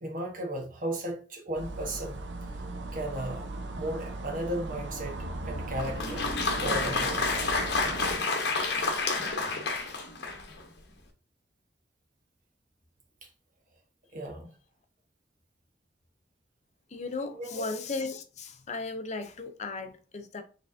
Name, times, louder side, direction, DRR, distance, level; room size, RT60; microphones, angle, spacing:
voice 1, 0.0-2.2 2.9-3.5 3.7-7.4 13.2-13.3 14.1-14.5 17.3-17.7, right 1 dB, 50° right, 1.2 m, -35 dB
sound 1, 1.5-8.2, right 2 dB, 80° right, 0.7 m, -37 dB
Applause, 5.7-10.6, left 3 dB, 60° left, 0.9 m, -29 dB
voice 2, 16.9-20.4, left 3 dB, 40° left, 0.6 m, -36 dB
4.5 x 3.4 x 2.7 m
head